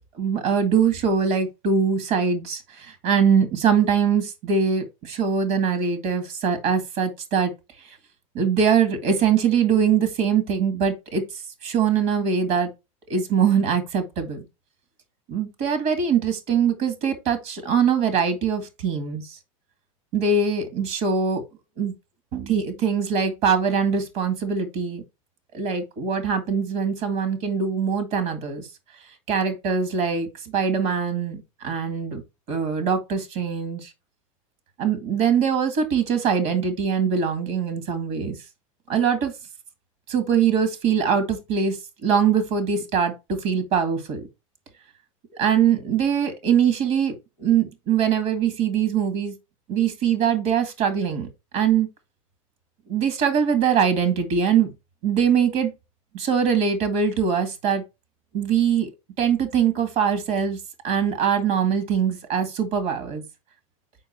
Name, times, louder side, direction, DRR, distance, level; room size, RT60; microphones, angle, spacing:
voice 1, 0.1-7.5 7.8-8.0 8.3-11.3 11.6-12.7 13.1-14.4 15.3-19.4 20.1-21.4 21.8-21.9 22.3-25.0 25.5-28.7 29.3-32.2 32.5-33.9 34.8-38.4 38.9-39.3 40.1-44.3 45.4-49.3 49.7-51.3 51.5-51.9 52.9-54.7 55.0-55.7 56.1-57.8 58.3-58.9 59.2-60.6 60.8-63.2, right 7 dB, 60° right, 2.0 m, -22 dB
6.4 x 4.6 x 4.3 m
hypercardioid pair, 105°, 17 cm